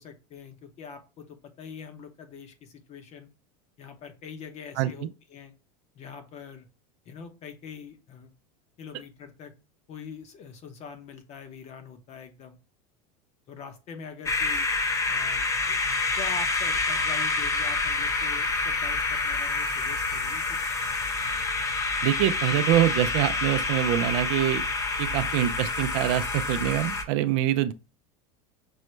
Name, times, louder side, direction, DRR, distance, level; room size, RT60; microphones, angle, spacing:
voice 1, 0.0-3.3 3.8-5.5 5.9-6.7 7.0-8.3 8.8-9.5 9.9-12.6 13.5-14.7 15.0-20.6, left 6 dB, 35° left, 0.8 m, -43 dB
sound 1, 14.3-27.0, left 3 dB, 15° left, 0.5 m, -27 dB
voice 2, 22.0-24.6 25.0-27.7, right 13 dB, 55° right, 0.4 m, -25 dB
6.1 x 2.1 x 3.1 m
supercardioid pair, 135°, 18 cm